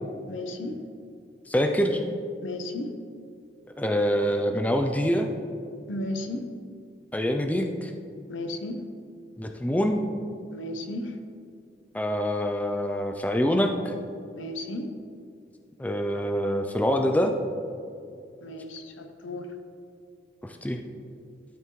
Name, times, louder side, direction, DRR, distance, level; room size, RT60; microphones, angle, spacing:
voice 1, 0.3-0.8 2.4-2.9 5.9-6.4 8.3-8.8 10.5-11.1 14.3-14.9 18.4-19.5, left 1 dB, 85° left, 6 dB, 0.8 m, -34 dB
voice 2, 1.5-2.0 3.8-5.3 7.1-7.9 9.4-10.0 11.9-13.9 15.8-17.3 20.4-20.8, equal, 10° left, 4 dB, 0.4 m, -25 dB
12.5 x 5.8 x 3.1 m, 2.4 s
head